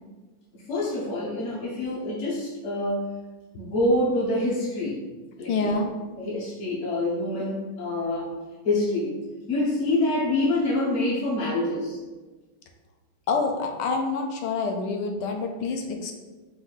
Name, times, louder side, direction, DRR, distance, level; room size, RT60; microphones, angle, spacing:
voice 1, 0.5-3.1 3.6-5.0 5.4-5.8 6.2-8.3 8.6-9.2 9.5-12.0, left 1 dB, 50° left, -6 dB, 0.8 m, -26 dB
voice 2, 5.5-5.9 13.3-16.1, left 3 dB, 70° left, 3 dB, 1.2 m, -27 dB
4.4 x 2.6 x 3.9 m, 1.2 s
omnidirectional pair, 2.1 m